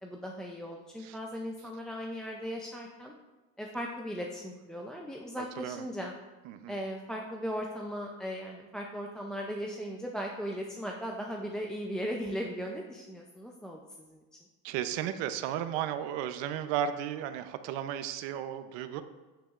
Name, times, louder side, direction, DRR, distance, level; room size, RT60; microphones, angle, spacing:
voice 1, 0.0-3.1 3.6-6.1 6.7-14.2, equal, ahead, -1 dB, 0.4 m, -38 dB
voice 2, 5.4-5.9 6.5-6.8 14.6-19.0, right 10 dB, 85° right, 10 dB, 0.7 m, -34 dB
9.0 x 8.9 x 2.4 m, 1.2 s
cardioid pair, 140°, 42 cm